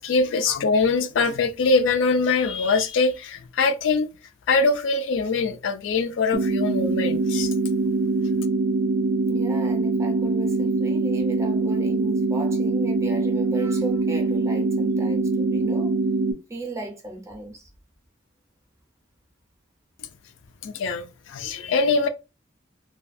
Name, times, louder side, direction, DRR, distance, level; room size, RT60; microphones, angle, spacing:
voice 1, 0.0-4.1 4.5-7.5 20.6-22.1, left 4 dB, 75° left, 0.4 m, -23 dB
sound 1, 6.3-16.3, right 3 dB, 80° right, 0.4 m, -23 dB
voice 2, 9.3-16.0 16.5-17.7, right 2 dB, 15° right, 0.5 m, -35 dB
2.3 x 2.2 x 2.5 m
head